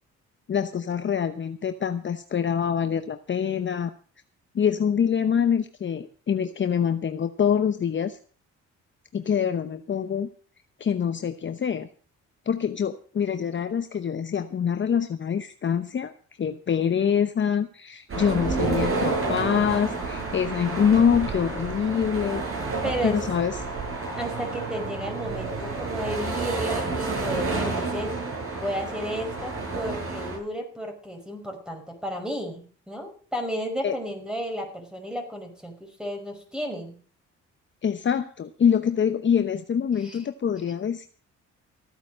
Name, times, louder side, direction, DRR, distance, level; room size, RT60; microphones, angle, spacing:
voice 1, 0.5-3.9 4.5-8.2 9.1-10.3 10.8-11.9 12.5-16.1 16.4-22.4 23.0-23.6 33.8-33.9 37.8-41.1, left 7 dB, 40° left, 9 dB, 0.9 m, -25 dB
sound 1, 18.1-30.4, right 3 dB, 45° right, 8.0 m, -30 dB
voice 2, 18.6-18.9 22.8-23.2 24.2-28.1 28.5-37.0 40.0-40.2, equal, ahead, 3 dB, 5.3 m, -33 dB
14.5 x 9.2 x 6.4 m, 0.43 s
cardioid pair, 90°, 30 cm